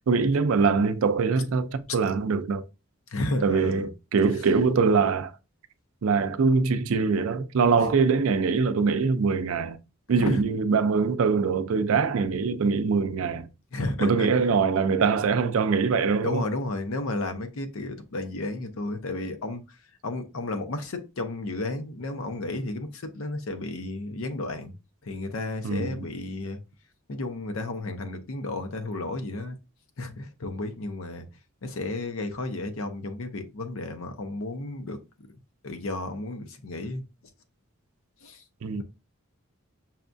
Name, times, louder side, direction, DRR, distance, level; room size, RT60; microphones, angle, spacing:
voice 1, 0.0-2.6 3.4-5.3 6.0-9.8 10.1-13.5 14.0-16.4 25.6-26.0 38.6-38.8, right 5 dB, 70° right, 0.4 m, -23 dB
voice 2, 3.1-3.9 4.4-4.5 10.2-10.4 13.7-14.3 16.2-19.8 20.0-24.7 25.0-26.6 27.1-29.6 30.0-31.2 31.6-37.0 38.2-38.4 38.8-38.9, left 2 dB, 70° left, 0.7 m, -33 dB
5.6 x 2.3 x 2.5 m
head